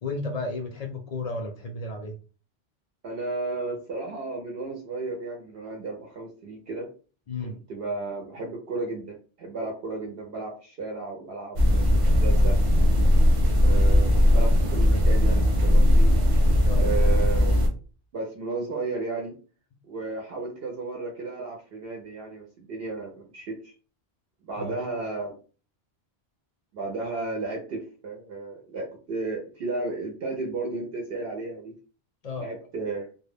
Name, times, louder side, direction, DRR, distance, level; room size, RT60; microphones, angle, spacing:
voice 1, 0.0-2.2 7.3-7.6 16.6-16.9 24.6-24.7 32.2-32.5, left 3 dB, 55° left, 0.4 m, -33 dB
voice 2, 3.0-6.9 7.4-12.6 13.6-16.1 16.8-17.6 18.1-19.3 19.9-23.7 24.5-25.3 26.7-31.7 32.4-33.1, right 3 dB, 70° right, 0.8 m, -33 dB
sound 1, 11.6-17.7, left 1 dB, 45° right, 0.5 m, -19 dB
2.2 x 2.1 x 3.3 m
omnidirectional pair, 1.1 m